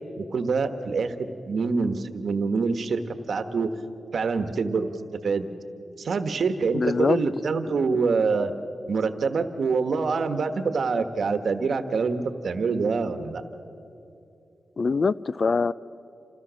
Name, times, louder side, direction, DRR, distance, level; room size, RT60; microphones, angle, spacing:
voice 1, 0.2-3.0 3.3-3.7 4.1-4.9 5.2-5.5 6.0-8.5 8.9-13.4, right 4 dB, 65° right, 9 dB, 1.2 m, -25 dB
voice 2, 6.7-7.2 7.9-8.0 14.8-15.7, left 4 dB, 50° left, 18 dB, 0.4 m, -23 dB
27.5 x 16.0 x 6.3 m, 2.7 s
wide cardioid pair, 95°, 0 cm